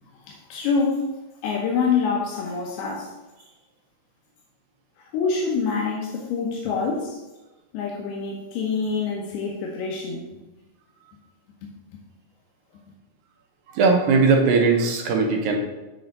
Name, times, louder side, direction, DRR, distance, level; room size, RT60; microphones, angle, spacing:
voice 1, 0.3-1.1 1.4-3.1 5.0-7.2 7.7-10.2 11.6-11.7, left 5 dB, 85° left, -1 dB, 2.9 m, -26 dB
voice 2, 13.8-15.6, right 4 dB, 70° right, 1 dB, 2.6 m, -19 dB
8.2 x 4.6 x 5.3 m, 1.1 s
omnidirectional pair, 4.5 m